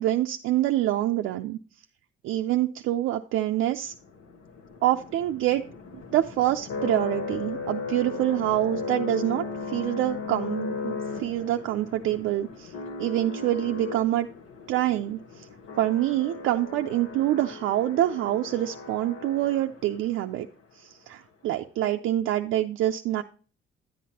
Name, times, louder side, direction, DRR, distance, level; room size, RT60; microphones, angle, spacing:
voice 1, 0.0-1.6 2.2-3.9 4.8-5.6 5.9-10.9 11.2-12.7 13.0-14.3 14.7-15.5 15.8-20.5 20.8-23.2, right 13 dB, 85° right, 4 dB, 0.4 m, -26 dB
sound 1, 3.9-20.1, left 4 dB, 85° left, 1.2 m, -37 dB
10.0 x 8.4 x 2.8 m, 0.38 s
cardioid pair, 90°, 20 cm